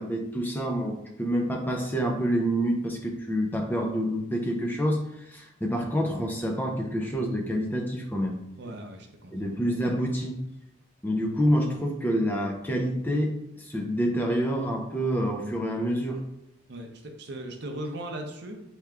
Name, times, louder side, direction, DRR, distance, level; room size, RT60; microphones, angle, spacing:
voice 1, 0.0-8.4 9.3-10.4 11.0-16.2, equal, 10° left, 1 dB, 0.4 m, -27 dB
voice 2, 8.6-9.3 16.7-18.6, right 1 dB, 55° right, 3 dB, 0.6 m, -38 dB
3.4 x 2.9 x 3.5 m, 0.85 s
head